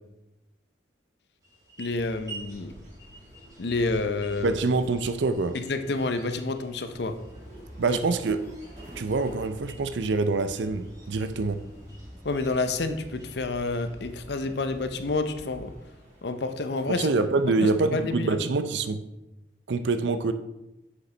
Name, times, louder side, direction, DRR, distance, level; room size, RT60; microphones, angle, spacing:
sound 1, 1.4-15.2, right 3 dB, 20° right, 2.5 m, -52 dB
voice 1, 1.8-2.7 3.6-4.5 5.5-7.1 7.9-8.0 12.2-15.7 16.2-17.1 17.6-18.4, left 3 dB, 65° left, 9 dB, 0.6 m, -29 dB
sound 2, 1.9-18.4, equal, 40° right, 2.5 m, -52 dB
voice 2, 4.4-5.6 7.8-8.4 9.0-11.6 16.9-19.0 19.7-20.3, right 3 dB, 75° right, 10 dB, 0.5 m, -25 dB
sound 3, 6.9-15.7, equal, 5° right, 1.1 m, -47 dB
7.2 x 6.6 x 3.3 m, 0.94 s
head